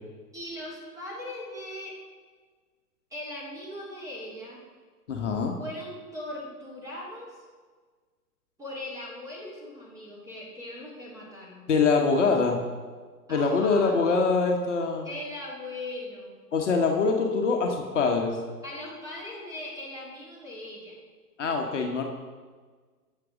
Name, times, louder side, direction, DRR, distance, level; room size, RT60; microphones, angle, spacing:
voice 1, 0.3-1.9 3.1-4.6 5.6-7.5 8.6-11.7 13.3-14.0 15.0-16.4 18.6-21.0, left 1 dB, 5° right, -5 dB, 2.2 m, -39 dB
voice 2, 5.1-5.6 11.7-12.6 13.3-15.1 16.5-18.4 21.4-22.0, left 4 dB, 50° left, 2 dB, 1.2 m, -24 dB
12.5 x 7.7 x 3.7 m, 1.5 s
figure-of-eight pair, 120°, 48 cm